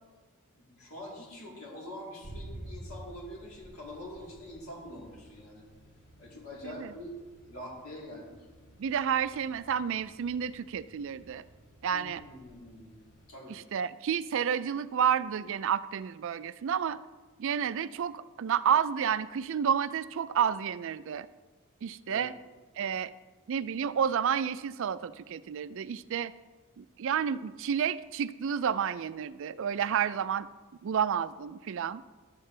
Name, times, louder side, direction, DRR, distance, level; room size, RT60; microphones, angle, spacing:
voice 1, 0.6-5.6 6.2-7.1 7.5-8.3 11.9-12.9 13.3-13.6 22.1-22.3, left 1 dB, 75° left, -5 dB, 3.5 m, -45 dB
sound 1, 2.2-13.3, right 1 dB, 55° left, 2.2 m, -51 dB
voice 2, 8.8-11.4 11.8-12.2 13.5-17.0 17.4-21.3 21.8-22.3 22.8-23.1 23.5-26.3 26.8-30.5 30.8-32.0, right 8 dB, 60° right, 15 dB, 0.3 m, -30 dB
11.5 x 8.2 x 3.3 m, 1.3 s
head